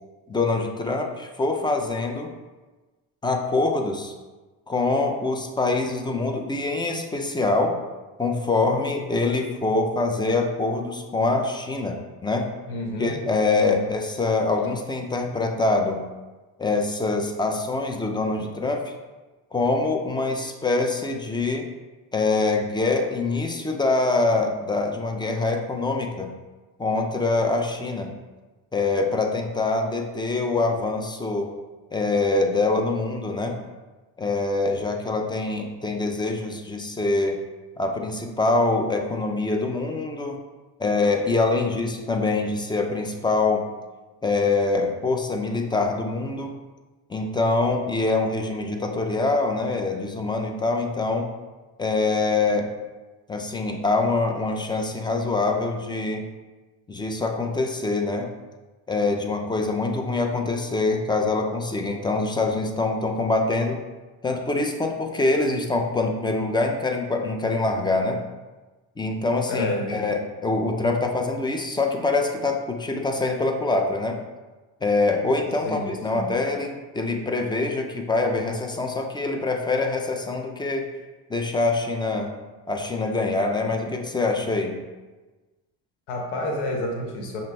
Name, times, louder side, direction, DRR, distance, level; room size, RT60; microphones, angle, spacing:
voice 1, 0.3-2.3 3.2-4.1 4.7-7.8 8.2-12.5 13.0-16.0 16.6-18.9 19.5-21.7 22.1-26.3 26.8-28.1 28.7-31.5 31.9-33.6 34.2-37.4 37.8-40.4 40.8-43.6 44.2-46.5 47.1-51.3 51.8-52.7 53.3-56.2 56.9-58.3 58.9-63.8 64.2-68.2 69.0-74.2 74.8-80.9 81.3-82.3 82.7-84.8, left 3 dB, 10° left, 3 dB, 0.4 m, -24 dB
voice 2, 12.7-13.2 13.5-13.9 69.5-70.1 75.6-76.3 86.1-87.4, left 1 dB, 80° left, 1 dB, 1.0 m, -29 dB
5.7 x 2.1 x 3.2 m, 1.2 s
supercardioid pair, 70°, 48 cm